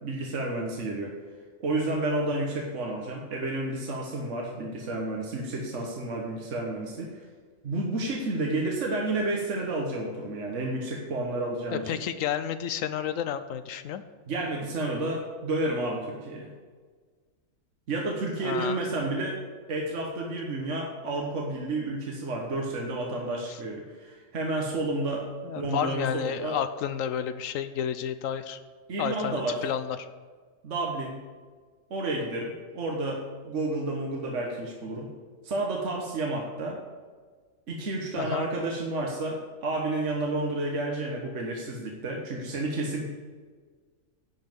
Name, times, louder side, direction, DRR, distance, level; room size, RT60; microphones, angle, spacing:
voice 1, 0.0-1.2 1.6-7.2 7.6-11.8 14.3-16.5 17.9-19.4 19.7-25.3 25.6-26.6 28.9-29.6 30.6-31.2 31.9-35.1 35.4-36.8 37.7-43.0, right 2 dB, 65° right, 0 dB, 1.5 m, -31 dB
voice 2, 11.7-14.0 18.4-18.8 23.5-23.6 25.4-28.6 29.0-30.0 38.2-38.5, left 9 dB, 85° left, 11 dB, 1.0 m, -31 dB
10.5 x 5.4 x 7.7 m, 1.5 s
omnidirectional pair, 1.3 m